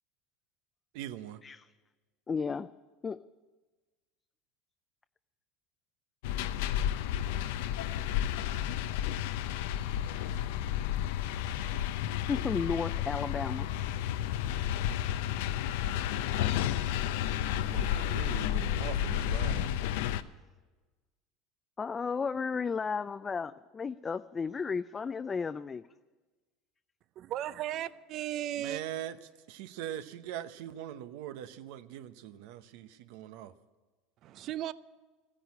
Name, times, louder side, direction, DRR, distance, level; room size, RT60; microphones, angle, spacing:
voice 1, 0.9-1.4 17.6-19.7 28.5-29.2 29.5-33.5, right 11 dB, 75° right, 0.9 m, -41 dB
voice 2, 2.3-2.7 3.0-3.2 12.3-13.7 21.8-25.8, left 5 dB, 25° left, 0.4 m, -33 dB
sound 1, 6.2-20.2, left 11 dB, 80° left, 0.6 m, -31 dB
voice 3, 27.2-28.8 34.2-34.7, right 12 dB, 50° right, 0.6 m, -35 dB
14.5 x 10.0 x 9.6 m
supercardioid pair, 115°, 0 cm